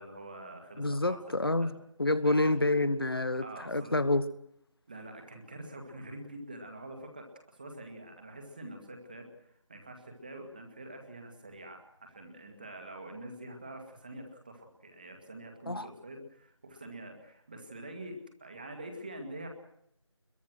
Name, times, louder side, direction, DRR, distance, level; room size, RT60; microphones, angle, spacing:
voice 1, 0.0-1.2 1.6-1.8 2.2-2.5 3.3-4.0 4.9-19.5, right 1 dB, 15° right, 4 dB, 2.0 m, -46 dB
voice 2, 0.8-1.7 2.0-4.2 15.7-15.9, left 2 dB, 45° left, 15 dB, 1.1 m, -28 dB
24.5 x 22.5 x 6.3 m, 0.73 s
figure-of-eight pair, 170°, 17 cm